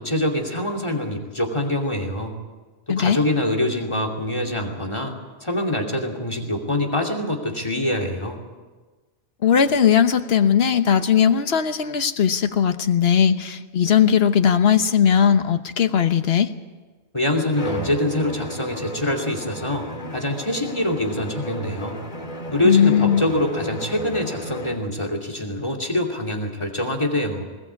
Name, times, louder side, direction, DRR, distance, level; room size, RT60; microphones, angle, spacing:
voice 1, 0.0-2.3 2.9-5.1 5.4-8.4 17.1-19.9 20.1-22.0 22.5-27.4, left 1 dB, 30° left, 4 dB, 2.8 m, -24 dB
voice 2, 9.4-16.5 22.6-23.2, left 8 dB, 75° left, 9 dB, 1.3 m, -18 dB
Bowed string instrument, 17.5-24.9, equal, 45° left, 1.9 m, -34 dB
21.0 x 19.0 x 8.3 m, 1.3 s
omnidirectional pair, 1.1 m